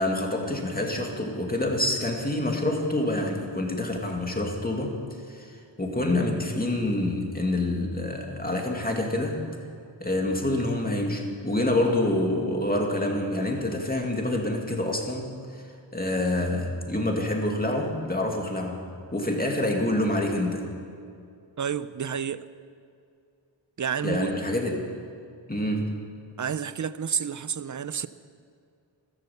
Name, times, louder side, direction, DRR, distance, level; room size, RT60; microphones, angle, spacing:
voice 1, 0.0-4.9 5.3-5.5 5.8-9.5 10.0-15.6 15.9-18.8 19.1-20.7 24.0-24.9 25.5-25.9, left 1 dB, 20° left, 2.4 m, -27 dB
voice 2, 21.6-22.4 23.8-24.3 26.4-28.1, right 7 dB, 40° right, 0.6 m, -30 dB
14.5 x 13.5 x 7.1 m
wide cardioid pair, 90°, 46 cm